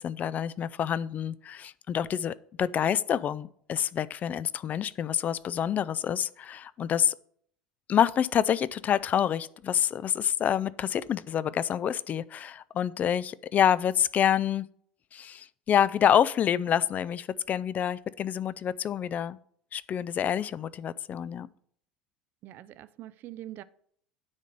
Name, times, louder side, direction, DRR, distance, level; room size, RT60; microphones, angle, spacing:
voice 1, 0.0-7.1 7.9-14.7 15.1-19.4 19.7-21.5, left 9 dB, 40° left, 0.4 m, -27 dB
voice 2, 22.4-23.6, right 14 dB, 50° right, 0.4 m, -43 dB
9.6 x 3.9 x 6.6 m
hypercardioid pair, 75°, 4 cm